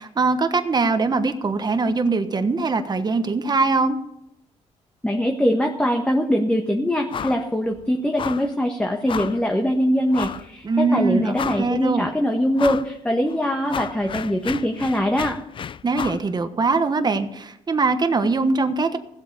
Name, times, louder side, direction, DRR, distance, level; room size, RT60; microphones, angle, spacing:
voice 1, 0.0-4.0 10.6-12.1 15.8-19.0, right 3 dB, 30° right, 8 dB, 1.3 m, -22 dB
voice 2, 5.0-15.4, equal, 10° left, 2 dB, 1.5 m, -22 dB
sound 1, 7.1-7.5 7.7-7.8 8.2-8.5 9.1-9.4 10.1-10.5 10.9-11.0 11.3-11.9 12.6-12.9 13.3-16.3, left 7 dB, 40° left, 0.4 m, -32 dB
15.5 x 8.0 x 6.8 m, 0.82 s
cardioid pair, 85°, 13 cm